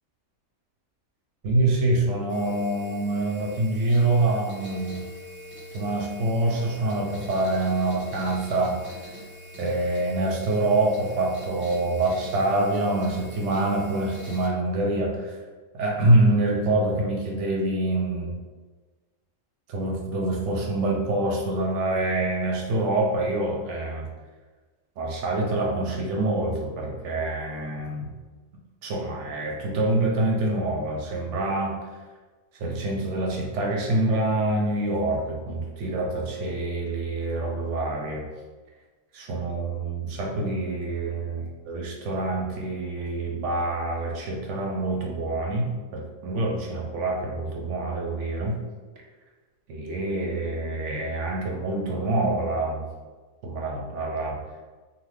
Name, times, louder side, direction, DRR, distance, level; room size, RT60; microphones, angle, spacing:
voice 1, 1.4-5.1 5.7-9.1 9.6-15.4 15.7-18.3 19.7-24.1 25.0-28.1 28.8-31.8 32.5-38.2 39.1-48.6 49.7-52.8 53.4-54.4, right 2 dB, 65° right, -1 dB, 0.8 m, -26 dB
sound 1, 2.3-14.5, equal, 5° right, 1.0 m, -43 dB
2.6 x 2.4 x 3.2 m, 1.3 s
omnidirectional pair, 1.5 m